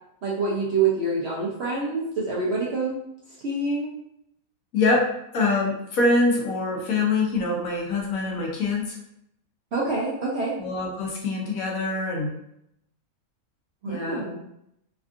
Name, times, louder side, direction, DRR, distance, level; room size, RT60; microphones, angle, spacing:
voice 1, 0.2-2.9 3.4-3.9 9.7-10.5 13.8-14.4, right 3 dB, 65° right, -4 dB, 0.7 m, -26 dB
voice 2, 4.7-5.0 5.3-9.0 10.6-12.3 13.9-14.2, left 3 dB, 70° left, -2 dB, 1.2 m, -24 dB
3.4 x 2.4 x 2.4 m, 0.76 s
omnidirectional pair, 1.6 m